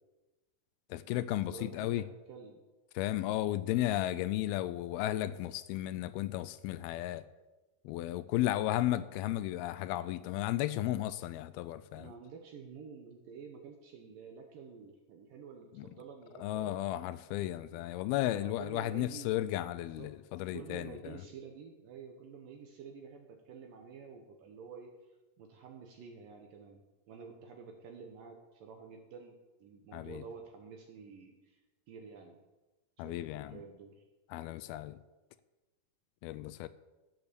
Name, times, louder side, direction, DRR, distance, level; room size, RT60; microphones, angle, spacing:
voice 1, 0.9-2.0 3.0-7.2 7.9-12.1 15.8-15.9 16.4-20.9 29.9-30.2 33.0-33.6 34.3-35.0 36.2-36.7, left 14 dB, 85° left, 2.3 m, -34 dB
voice 2, 1.4-2.6 11.9-16.9 17.7-17.8 18.2-19.5 19.9-20.1 20.5-24.9 25.4-26.8 27.1-31.6 31.9-32.4 33.0-34.0, right 6 dB, 70° right, 2.4 m, -50 dB
14.0 x 7.9 x 6.8 m
omnidirectional pair, 4.8 m